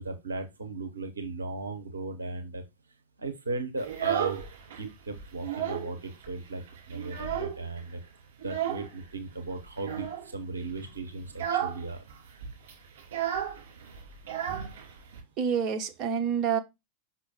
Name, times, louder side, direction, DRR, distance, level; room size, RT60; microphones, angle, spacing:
voice 1, 0.0-2.6 3.2-4.4 4.8-8.0 8.4-12.0, right 3 dB, 75° right, 0.8 m, -36 dB
Child speech kid speaking, 3.8-4.8 5.2-5.9 6.2-6.3 6.7-7.8 8.4-8.9 9.8-10.3 10.7-10.9 11.3-11.8 12.1-12.2 12.4-15.2, right 10 dB, 60° right, 3.1 m, -33 dB
voice 2, 15.4-16.6, right 7 dB, 35° right, 0.9 m, -27 dB
6.1 x 5.6 x 2.8 m
figure-of-eight pair, 90°, 0 cm